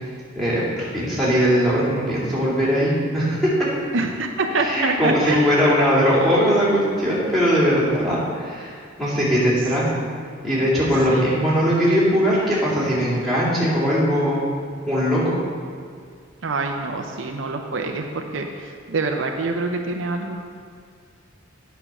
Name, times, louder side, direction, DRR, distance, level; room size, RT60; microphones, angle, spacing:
voice 1, 0.3-3.5 4.6-9.8 10.4-14.5 14.9-15.3, equal, ahead, -9 dB, 2.7 m, -20 dB
voice 2, 3.9-5.5 11.1-11.2 16.4-20.4, right 3 dB, 65° right, 3 dB, 0.6 m, -25 dB
8.9 x 5.6 x 6.1 m, 2.1 s
head